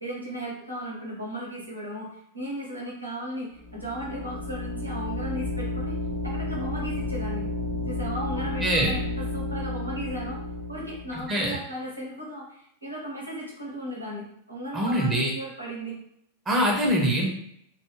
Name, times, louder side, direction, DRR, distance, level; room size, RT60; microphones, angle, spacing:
voice 1, 0.0-6.0 6.2-7.4 7.9-10.4 10.7-16.0, equal, 85° right, -5 dB, 0.9 m, -36 dB
sound 1, 3.6-11.3, left 2 dB, 15° left, 0.5 m, -32 dB
voice 2, 8.6-8.9 11.3-11.6 14.7-15.3 16.5-17.3, equal, 20° right, -2 dB, 0.7 m, -23 dB
2.3 x 2.3 x 3.1 m, 0.73 s
figure-of-eight pair, 90°, 0 cm